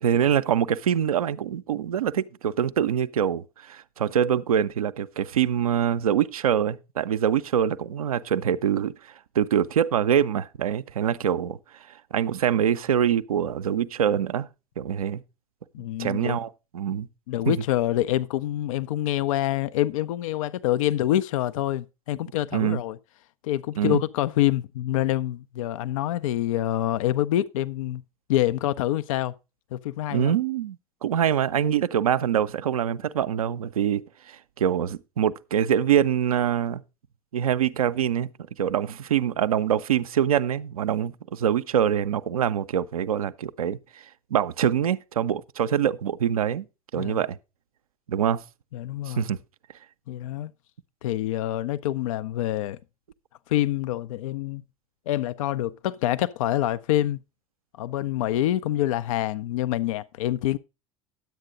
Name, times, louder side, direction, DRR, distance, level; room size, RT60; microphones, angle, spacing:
voice 1, 0.0-11.6 12.1-14.5 14.8-15.2 16.0-17.1 17.5-17.6 22.5-22.8 23.8-24.0 30.1-34.0 34.3-36.8 37.3-38.3 38.6-43.8 44.3-46.6 46.9-47.4 48.1-48.4 49.1-49.4, right 9 dB, 80° right, 0.5 m, -24 dB
voice 2, 15.7-16.4 17.3-23.0 23.4-28.0 28.3-29.3 29.7-30.3 47.0-47.2 48.7-49.3 50.1-50.5 51.0-52.8 53.5-54.6 55.1-57.2 57.8-60.6, left 13 dB, 70° left, 0.4 m, -26 dB
10.5 x 8.1 x 3.8 m
figure-of-eight pair, 75°, 18 cm